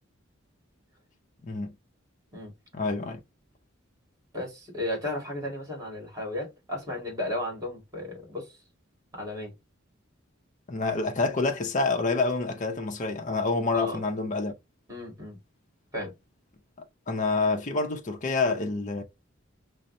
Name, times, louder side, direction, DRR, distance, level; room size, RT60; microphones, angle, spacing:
voice 1, 1.4-1.7 2.7-3.2 10.7-14.5 17.1-19.0, left 3 dB, 40° left, 0.6 m, -27 dB
voice 2, 4.3-8.6 9.1-9.5 13.7-14.0 14.9-15.4 15.9-16.1, left 1 dB, 15° right, 1.9 m, -34 dB
5.2 x 2.0 x 2.6 m
head